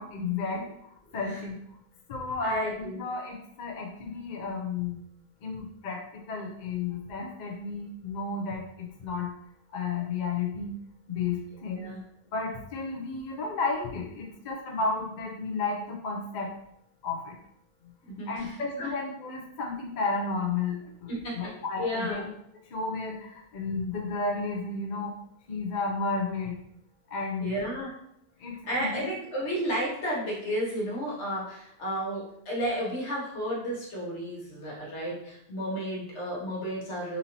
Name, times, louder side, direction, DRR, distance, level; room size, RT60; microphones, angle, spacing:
voice 1, 0.0-1.6 2.1-5.0 5.4-9.3 9.7-10.7 11.1-11.9 12.3-16.5 17.0-17.3 18.3-22.2 22.7-25.1 25.5-26.5 27.1-27.5 28.4-29.1, left 4 dB, 50° left, 0 dB, 0.6 m, -32 dB
voice 2, 2.4-3.0 11.7-12.0 18.1-19.0 21.1-22.3 27.4-27.9 28.6-37.2, equal, 75° left, -4 dB, 1.5 m, -33 dB
4.0 x 2.7 x 2.9 m, 0.74 s
omnidirectional pair, 1.2 m